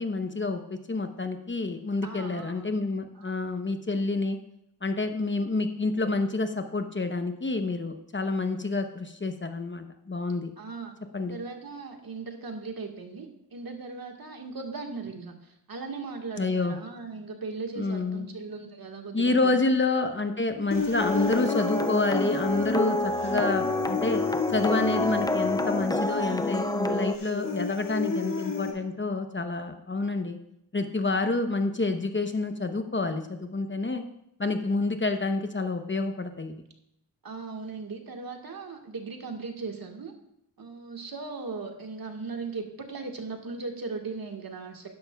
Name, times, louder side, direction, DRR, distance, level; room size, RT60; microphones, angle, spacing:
voice 1, 0.0-4.4 4.8-10.5 11.1-11.4 16.4-16.8 17.8-18.3 19.1-24.2 24.5-30.4 30.7-34.0 34.4-36.6, left 3 dB, 25° left, 7 dB, 0.9 m, -28 dB
voice 2, 2.0-2.7 3.2-3.3 10.6-10.9 11.3-15.3 15.7-19.4 37.2-40.1 40.6-44.9, right 4 dB, 55° right, 3 dB, 1.7 m, -38 dB
Human voice, 20.7-28.7, left 3 dB, 50° left, 2.2 m, -32 dB
sound 1, 21.0-27.2, left 2 dB, 10° left, 0.4 m, -28 dB
11.5 x 10.5 x 2.3 m, 0.79 s
cardioid pair, 55°, 42 cm